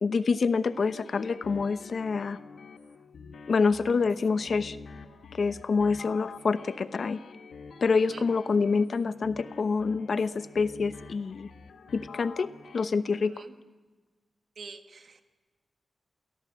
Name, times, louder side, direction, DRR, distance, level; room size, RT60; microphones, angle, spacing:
voice 1, 0.0-2.4 3.5-4.8 5.3-7.2 7.8-11.5 11.9-13.3, left 4 dB, 60° left, 12 dB, 0.9 m, -27 dB
sound 1, 0.7-12.8, left 5 dB, 85° left, 1.3 m, -47 dB
voice 2, 8.0-8.3 13.2-13.5 14.6-15.2, right 4 dB, 70° right, 7 dB, 1.7 m, -44 dB
28.5 x 17.5 x 8.4 m, 1.3 s
wide cardioid pair, 100°, 0 cm